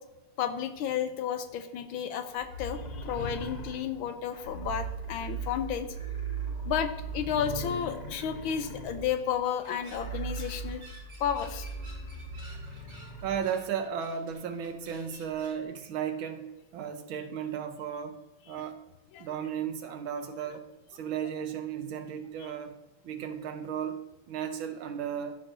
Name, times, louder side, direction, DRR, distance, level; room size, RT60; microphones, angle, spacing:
voice 1, 0.4-5.9 6.6-10.8 11.2-11.7 19.1-19.3, left 8 dB, 75° left, 9 dB, 1.4 m, -32 dB
sound 1, 2.4-13.4, right 3 dB, 40° left, 0.6 m, -39 dB
sound 2, 9.0-15.6, right 1 dB, 40° right, 2.1 m, -54 dB
voice 2, 13.2-18.2 18.5-18.8 19.2-20.6 20.9-22.7 23.0-24.0 24.3-25.4, right 8 dB, 75° right, 7 dB, 1.5 m, -35 dB
14.5 x 6.3 x 2.6 m, 1.0 s
omnidirectional pair, 2.4 m